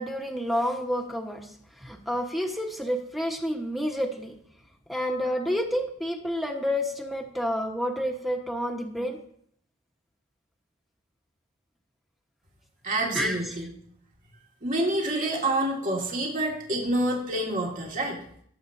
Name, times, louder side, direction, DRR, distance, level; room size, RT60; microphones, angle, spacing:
voice 1, 0.0-1.4 1.8-4.3 4.9-9.2 13.1-13.6, equal, ahead, 2 dB, 1.3 m, -29 dB
voice 2, 12.8-13.7 14.6-18.2, right 1 dB, 40° right, -1 dB, 2.2 m, -27 dB
18.5 x 7.9 x 2.8 m, 0.65 s
head